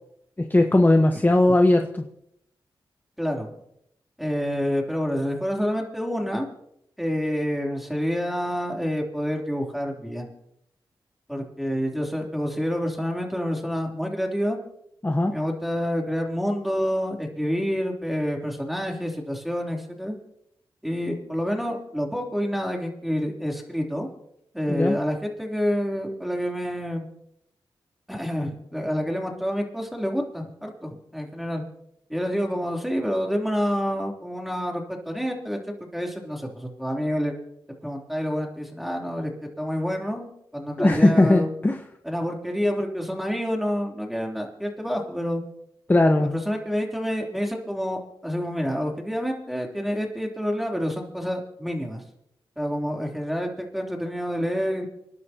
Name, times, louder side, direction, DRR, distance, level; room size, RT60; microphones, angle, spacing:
voice 1, 0.5-2.0 15.0-15.3 24.7-25.0 40.8-41.8 45.9-46.3, left 2 dB, 20° left, 5 dB, 1.1 m, -18 dB
voice 2, 3.2-3.5 4.2-6.5 7.0-10.3 11.3-14.6 15.3-20.1 20.8-24.1 24.5-27.0 28.1-31.6 32.1-37.3 37.8-41.5 42.0-45.4 46.2-52.0 52.6-54.9, equal, ahead, 0 dB, 3.2 m, -28 dB
27.0 x 11.0 x 2.9 m, 0.76 s
cardioid pair, 60°, 9 cm